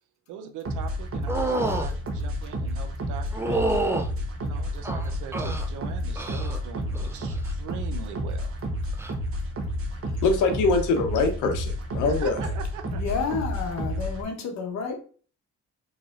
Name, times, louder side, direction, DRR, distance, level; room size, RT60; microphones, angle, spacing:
voice 1, 0.3-3.7 4.4-8.6 12.1-13.0, right 8 dB, 85° right, 6 dB, 0.6 m, -41 dB
sound 1, 0.6-14.2, equal, 50° right, 1.0 m, -30 dB
sound 2, 1.3-1.9 3.3-4.1 4.8-5.7 6.2-6.6 6.9-7.4 8.9-9.1, right 2 dB, 10° right, 0.5 m, -28 dB
voice 2, 10.2-12.4, left 3 dB, 85° left, 6 dB, 0.8 m, -23 dB
voice 3, 12.8-15.0, left 5 dB, 65° left, 3 dB, 1.0 m, -30 dB
4.0 x 3.2 x 2.4 m, 0.41 s
cardioid pair, 90°, 30 cm